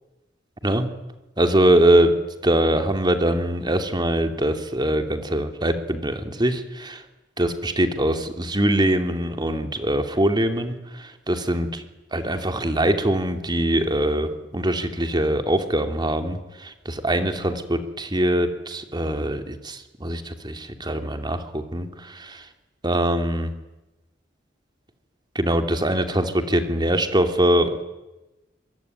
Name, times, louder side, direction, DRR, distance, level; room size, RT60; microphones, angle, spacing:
voice 1, 1.4-2.1 2.4-7.0 7.4-11.8 12.1-22.4 22.8-23.5 25.3-27.8, right 1 dB, 25° right, 7 dB, 2.7 m, -23 dB
25.5 x 23.5 x 9.6 m, 1.0 s
head